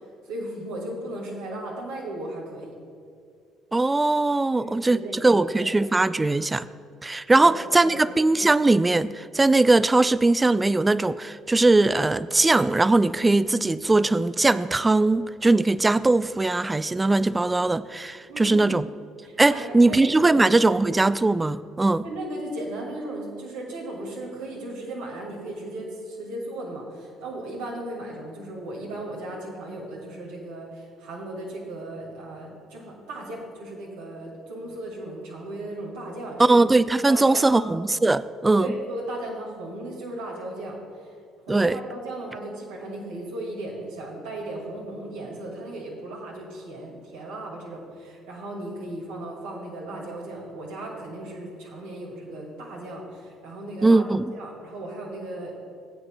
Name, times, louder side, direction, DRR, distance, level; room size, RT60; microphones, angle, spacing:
voice 1, 0.2-2.8 4.5-5.7 7.4-7.5 7.8-8.0 18.3-18.8 19.2-20.1 20.6-20.7 22.0-36.6 37.1-37.8 38.6-41.1 41.5-54.0 54.3-55.5, right 1 dB, 80° right, -3 dB, 2.1 m, -36 dB
voice 2, 3.7-6.7 7.0-18.9 19.4-22.1 36.5-38.7 41.5-41.8 53.8-54.3, right 2 dB, 20° right, 17 dB, 0.3 m, -20 dB
15.0 x 8.8 x 2.3 m, 2.3 s
hypercardioid pair, 55°, 0 cm